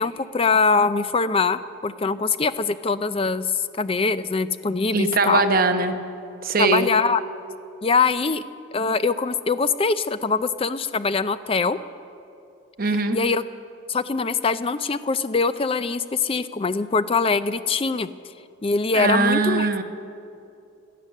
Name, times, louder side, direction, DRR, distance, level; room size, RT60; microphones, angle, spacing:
voice 1, 0.0-5.4 6.6-7.2 7.8-8.4 8.7-11.8 13.1-13.4 13.9-18.1 18.6-19.7, left 4 dB, 25° left, 13 dB, 0.4 m, -23 dB
voice 2, 4.9-6.0 6.4-6.9 12.8-13.2 18.9-19.8, right 3 dB, 45° right, 6 dB, 1.0 m, -21 dB
17.5 x 12.0 x 6.5 m, 2.6 s
head